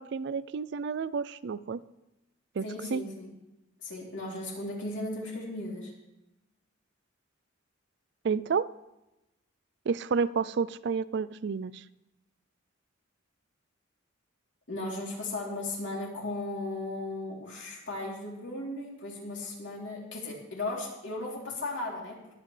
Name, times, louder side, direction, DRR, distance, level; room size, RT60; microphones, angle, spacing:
voice 1, 0.0-1.8 2.6-2.7 2.9-3.0 8.2-8.7 9.9-11.8, right 5 dB, 55° right, 17 dB, 0.4 m, -30 dB
voice 2, 2.6-3.3 3.8-5.9 14.7-22.2, left 2 dB, 65° left, -2 dB, 3.3 m, -36 dB
21.5 x 8.7 x 3.3 m, 0.93 s
head